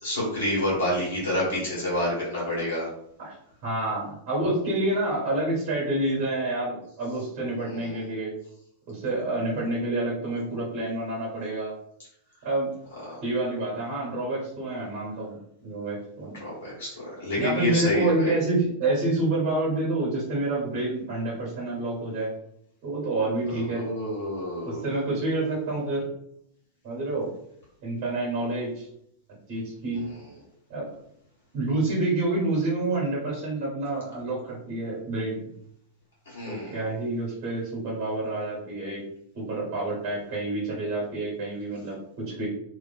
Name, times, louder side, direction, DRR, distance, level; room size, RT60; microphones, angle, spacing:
voice 1, 0.0-2.9 7.6-8.0 13.1-13.2 16.3-18.3 23.5-24.9 36.3-36.7, left 1 dB, 60° left, -7 dB, 1.3 m, -28 dB
voice 2, 3.6-8.3 8.9-11.7 12.4-12.7 13.2-15.4 15.6-16.4 17.4-22.3 22.8-23.9 24.6-26.1 26.8-27.3 27.8-28.9 29.5-30.1 30.7-30.8 31.5-35.4 36.4-39.0 39.3-42.5, right 2 dB, 40° right, -5 dB, 1.3 m, -28 dB
2.6 x 2.3 x 2.4 m, 0.73 s
figure-of-eight pair, 90°, 0 cm